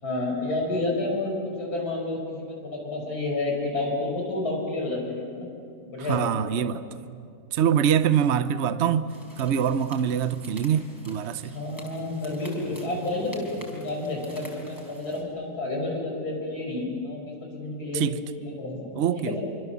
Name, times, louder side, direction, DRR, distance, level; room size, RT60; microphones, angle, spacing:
voice 1, 0.0-5.5 5.9-6.2 11.4-18.0 18.4-19.3, left 2 dB, 90° left, 6.6 m, -30 dB
voice 2, 6.1-6.8 7.5-9.1 9.4-11.5 17.9-18.2 19.0-19.3, right 8 dB, 55° right, 0.9 m, -24 dB
sound 1, 9.1-15.2, equal, 10° left, 4.4 m, -46 dB
26.0 x 25.0 x 7.2 m
omnidirectional pair, 1.6 m